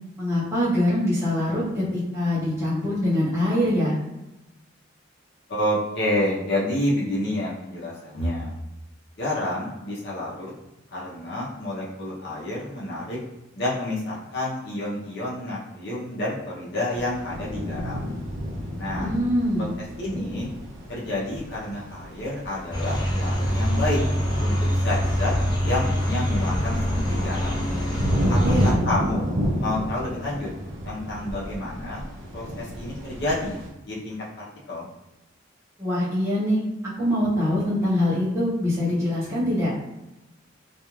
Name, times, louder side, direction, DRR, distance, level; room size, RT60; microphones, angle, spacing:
voice 1, 0.2-4.0 18.9-19.7 28.2-28.8 35.8-36.6 37.0-39.7, left 1 dB, 15° right, -10 dB, 0.6 m, -24 dB
voice 2, 5.5-8.5 9.2-10.5 10.9-13.2 13.5-18.1 18.8-19.1 19.6-19.7 20.0-20.5 20.9-24.0 24.4-25.3 25.6-26.8 27.1-27.7 28.3-29.3 29.6-30.5 30.8-32.0 32.3-33.6 33.8-34.9, left 1 dB, 60° left, -5 dB, 0.7 m, -29 dB
sound 1, 16.9-33.7, equal, 80° right, 0.5 m, -31 dB
sound 2, 22.7-28.7, equal, 25° left, 0.6 m, -24 dB
2.4 x 2.3 x 2.9 m, 0.95 s
head